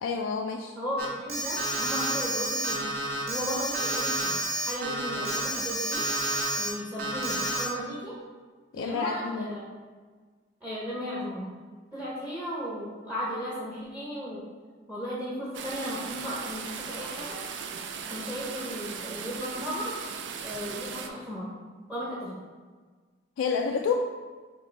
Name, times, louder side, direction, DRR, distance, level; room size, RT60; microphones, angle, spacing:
voice 1, 0.0-0.7 8.7-9.5 23.4-24.2, left 5 dB, 85° left, 2 dB, 0.3 m, -29 dB
voice 2, 0.8-2.9 3.3-4.4 4.7-6.0 6.6-8.2 8.7-9.6 10.6-11.5 11.9-14.4 14.9-17.4 18.1-20.0 20.4-21.5 21.9-22.4, equal, 5° right, -5 dB, 0.7 m, -35 dB
Alarm, 1.0-6.7 7.0-7.6, right 1 dB, 50° right, 0.8 m, -30 dB
sound 1, 15.5-21.1, right 6 dB, 70° right, 0.4 m, -38 dB
6.3 x 2.6 x 3.2 m, 1.5 s
head